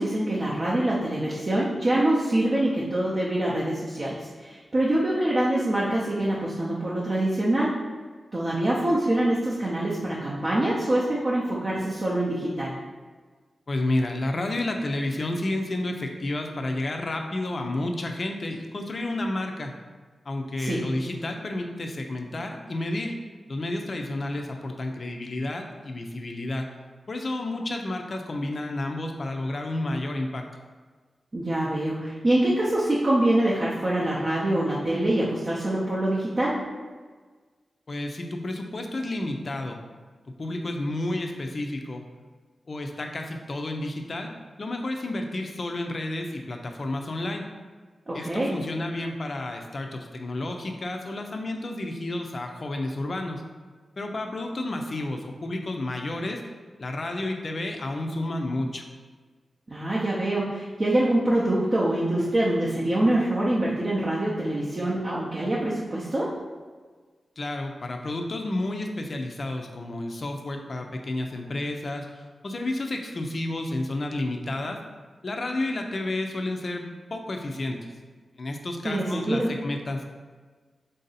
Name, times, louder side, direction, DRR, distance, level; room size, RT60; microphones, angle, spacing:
voice 1, 0.0-7.7 8.3-12.7 20.6-20.8 31.3-36.6 48.1-48.5 59.7-66.3 78.8-79.5, right 1 dB, 35° right, -6 dB, 0.6 m, -25 dB
voice 2, 13.7-19.7 20.3-23.1 23.5-26.7 27.1-30.4 37.9-39.8 40.4-42.0 42.7-47.4 48.1-53.4 54.0-56.4 56.8-58.8 67.4-72.1 72.4-74.8 75.2-76.8 77.1-77.9 78.4-80.0, left 2 dB, 40° left, 3 dB, 0.4 m, -31 dB
3.7 x 2.6 x 4.0 m, 1.4 s
wide cardioid pair, 135°, 0 cm